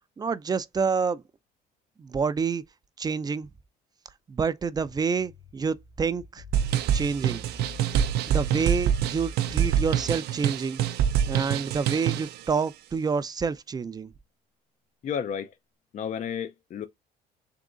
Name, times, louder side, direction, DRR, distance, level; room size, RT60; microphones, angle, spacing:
voice 1, 0.2-1.2 2.0-2.6 3.0-3.5 4.3-6.4 6.9-7.5 8.3-10.8 11.3-14.1, right 5 dB, 25° right, 0.4 m, -28 dB
sound 1, 4.8-10.1, left 1 dB, 75° left, 1.5 m, -43 dB
sound 2, 6.5-12.4, right 9 dB, 75° right, 0.5 m, -26 dB
voice 2, 15.0-15.5 15.9-16.9, left 8 dB, 45° left, 0.5 m, -32 dB
3.7 x 2.9 x 3.8 m
cardioid pair, 110°, 17 cm